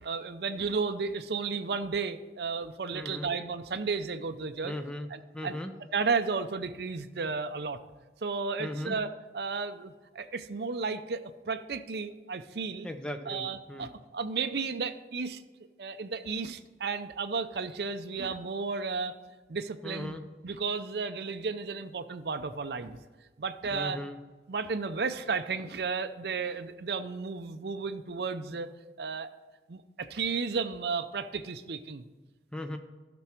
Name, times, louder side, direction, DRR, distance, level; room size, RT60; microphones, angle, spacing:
voice 1, 0.0-4.8 5.1-5.6 5.9-7.8 8.2-12.9 13.3-15.4 15.8-19.2 19.5-20.2 20.4-23.0 23.4-24.0 24.5-28.7 29.0-29.3 29.7-32.1, right 4 dB, 65° right, 9 dB, 0.5 m, -33 dB
voice 2, 2.9-3.3 4.6-5.7 8.6-9.0 12.8-13.9 19.8-20.2 23.7-24.2 32.5-32.8, left 1 dB, 5° left, 6 dB, 0.7 m, -38 dB
13.0 x 6.1 x 4.4 m, 1.3 s
head